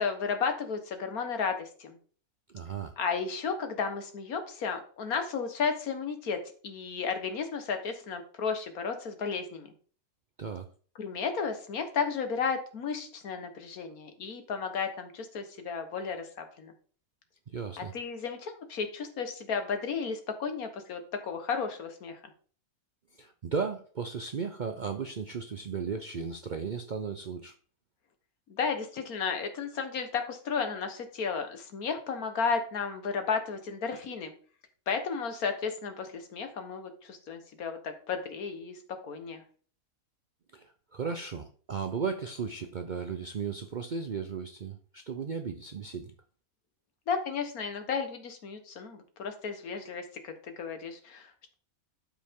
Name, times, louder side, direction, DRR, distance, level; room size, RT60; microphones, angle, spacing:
voice 1, 0.0-2.0 3.0-9.7 11.0-16.7 17.8-22.2 28.5-34.3 34.9-38.8 39.1-39.4 47.1-51.5, left 5 dB, 75° left, 1.7 m, -33 dB
voice 2, 2.5-3.0 10.4-10.7 17.5-17.9 23.2-27.5 40.5-46.1, right 5 dB, 55° right, 0.5 m, -35 dB
12.0 x 5.3 x 3.6 m
omnidirectional pair, 1.6 m